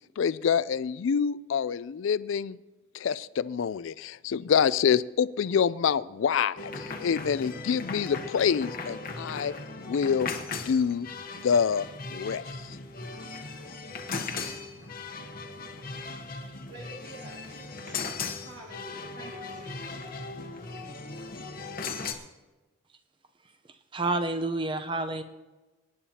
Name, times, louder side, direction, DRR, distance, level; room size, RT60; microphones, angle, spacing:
voice 1, 0.2-2.6 2.9-10.3 10.7-11.1 11.4-12.8, left 7 dB, 70° left, 0.4 m, -27 dB
sound 1, 6.6-22.1, left 4 dB, 45° left, 0.9 m, -38 dB
voice 2, 16.7-20.6 21.1-21.2, right 1 dB, 65° right, 1.6 m, -49 dB
voice 3, 23.9-25.2, right 2 dB, 25° right, 0.7 m, -29 dB
24.0 x 10.0 x 2.9 m
head